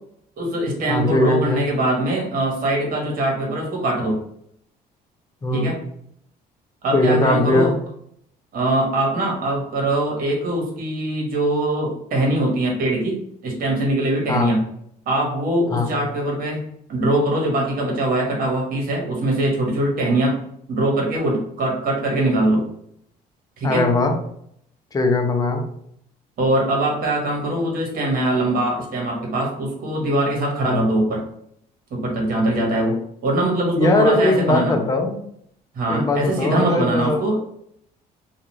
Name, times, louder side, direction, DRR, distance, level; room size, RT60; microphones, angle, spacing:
voice 1, 0.4-4.2 5.5-5.8 6.8-7.7 8.5-13.2 13.4-14.6 15.0-16.6 16.9-20.4 20.7-22.6 23.6-23.9 26.4-31.2 31.9-32.9 33.2-34.8 35.7-37.4, right 1 dB, 55° right, -1 dB, 1.2 m, -22 dB
voice 2, 0.9-1.6 5.4-5.7 6.9-7.7 14.3-14.5 15.7-15.9 23.6-24.1 24.9-25.6 30.6-30.8 33.7-35.2 35.9-37.2, left 2 dB, 20° left, 4 dB, 0.5 m, -19 dB
2.4 x 2.4 x 3.0 m, 0.69 s
cardioid pair, 110°, 17 cm